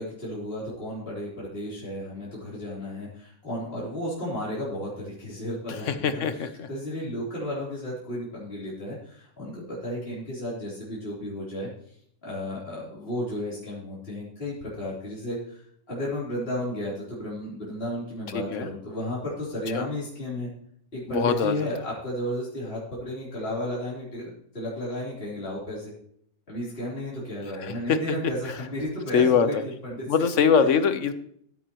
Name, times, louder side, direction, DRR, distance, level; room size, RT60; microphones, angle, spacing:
voice 1, 0.0-11.7 12.2-15.6 15.9-20.5 20.9-25.9 26.5-29.6 29.8-30.1, left 1 dB, 40° left, -7 dB, 3.8 m, -33 dB
voice 2, 5.9-6.7 18.3-18.7 19.7-19.9 21.1-21.7 27.5-28.0 29.1-29.6 30.1-31.1, left 6 dB, 60° left, 10 dB, 1.2 m, -23 dB
15.0 x 9.2 x 3.0 m, 0.66 s
omnidirectional pair, 1.5 m